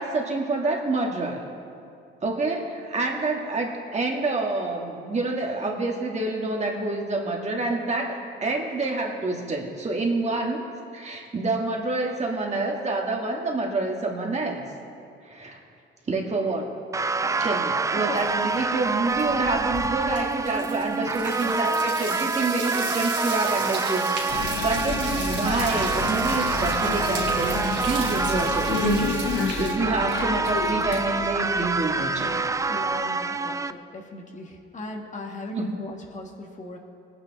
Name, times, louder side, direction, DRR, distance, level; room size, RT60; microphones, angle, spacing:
voice 1, 0.0-1.4 2.2-10.7 10.9-14.6 15.2-15.6 16.1-16.7 17.4-32.3 35.5-35.7, right 3 dB, 35° right, 0 dB, 2.0 m, -27 dB
sound 1, 16.9-33.7, right 3 dB, 15° right, 0.3 m, -27 dB
voice 2, 17.4-18.5 21.4-21.6 32.7-36.8, left 2 dB, 40° left, 1 dB, 1.7 m, -38 dB
sound 2, 18.2-18.5 18.8-29.8, right 4 dB, 60° right, 2.8 m, -36 dB
sound 3, 24.3-32.9, left 5 dB, 80° left, 1.0 m, -31 dB
20.0 x 9.2 x 4.1 m, 2.5 s
cardioid pair, 90°, 20 cm